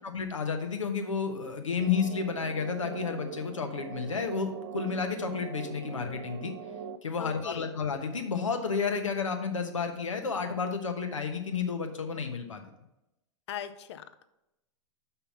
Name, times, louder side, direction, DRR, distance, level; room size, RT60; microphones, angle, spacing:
voice 1, 0.0-6.5 7.0-12.6, left 5 dB, 90° left, 5 dB, 1.1 m, -31 dB
sound 1, 1.8-7.0, right 6 dB, 50° right, 0.6 m, -41 dB
voice 2, 7.2-7.7 13.5-14.2, left 9 dB, 65° left, 11 dB, 0.7 m, -39 dB
5.7 x 5.7 x 5.8 m, 0.89 s
hypercardioid pair, 105°, 16 cm